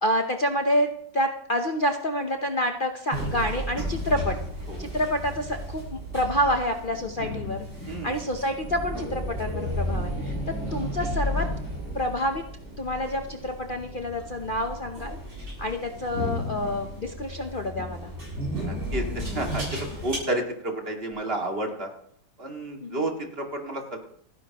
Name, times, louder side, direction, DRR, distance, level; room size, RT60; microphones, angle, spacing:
voice 1, 0.0-4.4 4.8-10.3 10.7-11.5 11.9-12.4 12.8-15.2 15.6-18.1 22.8-23.0, equal, 50° left, 4 dB, 0.6 m, -28 dB
sound 1, 3.1-20.2, equal, 60° right, 8.3 m, -33 dB
voice 2, 7.9-8.2 18.5-21.9 22.4-24.0, right 1 dB, 30° right, 2 dB, 2.3 m, -31 dB
28.5 x 10.0 x 3.0 m, 0.65 s
omnidirectional pair, 2.1 m